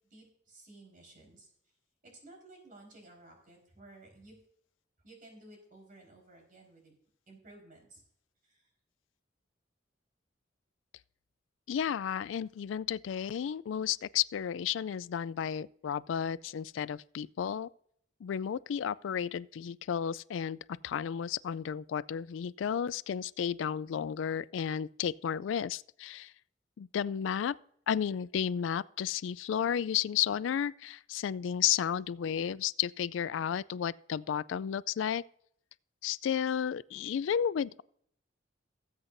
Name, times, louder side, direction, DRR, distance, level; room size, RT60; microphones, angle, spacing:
voice 1, 0.1-1.5 2.0-4.4 5.0-6.9 7.3-8.0 8.4-8.7, right 2 dB, 45° right, 4.5 m, -55 dB
voice 2, 11.7-17.7 18.2-20.6 20.8-26.3 26.8-27.6 27.9-35.2 36.0-37.8, left 8 dB, 90° left, 0.3 m, -32 dB
19.0 x 8.1 x 2.6 m
head